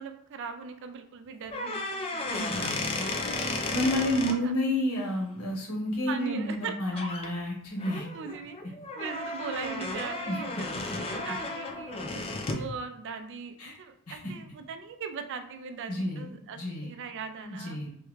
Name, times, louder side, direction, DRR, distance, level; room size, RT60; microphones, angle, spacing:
voice 1, 0.0-3.1 3.9-4.5 6.1-7.0 8.1-17.8, right 6 dB, 55° right, 8 dB, 0.4 m, -40 dB
sound 1, 1.4-4.4 6.5-6.7 7.0-7.3 7.8-12.7, left 2 dB, 25° left, 0.3 m, -34 dB
voice 2, 2.3-3.1 3.7-8.1 10.3-10.4 13.6-13.7 14.1-14.2 15.9-16.9 17.4-17.9, left 1 dB, 75° left, -2 dB, 1.1 m, -30 dB
3.5 x 2.1 x 3.1 m, 0.69 s
head